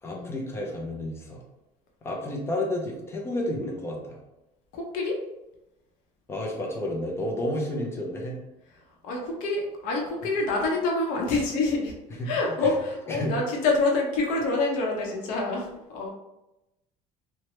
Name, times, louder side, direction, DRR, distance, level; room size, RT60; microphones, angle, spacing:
voice 1, 0.0-1.4 2.0-4.2 6.3-8.4 12.2-12.7 13.1-13.3, left 1 dB, 20° left, 0 dB, 0.4 m, -31 dB
voice 2, 4.7-5.2 9.0-11.9 12.2-16.1, left 3 dB, 75° left, 0 dB, 0.8 m, -27 dB
2.9 x 2.1 x 3.0 m, 0.93 s
cardioid pair, 170°, 14 cm